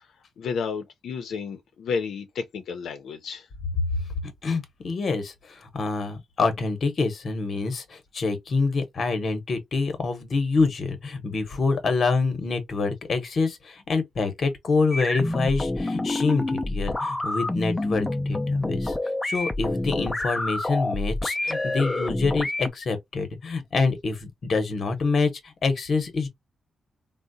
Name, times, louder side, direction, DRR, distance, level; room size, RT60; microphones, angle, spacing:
voice 1, 0.4-3.5, left 5 dB, 85° left, 0.5 m, -31 dB
voice 2, 4.4-18.9 19.2-26.3, left 4 dB, 45° left, 0.8 m, -26 dB
sound 1, 14.9-22.7, left 2 dB, 10° left, 0.3 m, -28 dB
3.7 x 2.0 x 2.5 m
wide cardioid pair, 165°, 0 cm